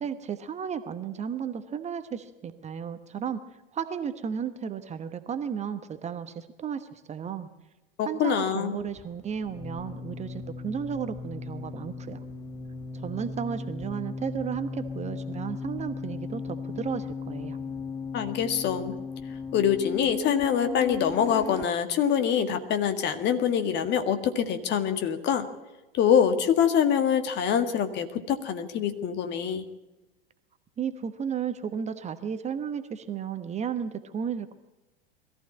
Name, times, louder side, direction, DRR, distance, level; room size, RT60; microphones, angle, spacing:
voice 1, 0.0-3.4 3.7-7.5 8.0-12.2 13.0-17.6 30.8-34.6, right 7 dB, 20° right, 10 dB, 1.1 m, -34 dB
voice 2, 8.0-8.8 18.1-19.0 19.5-25.5 25.9-29.6, left 8 dB, 35° left, 8 dB, 1.8 m, -25 dB
sound 1, 8.8-21.6, left 4 dB, 10° left, 0.8 m, -37 dB
21.5 x 14.5 x 8.7 m, 1.0 s
figure-of-eight pair, 90°, 30 cm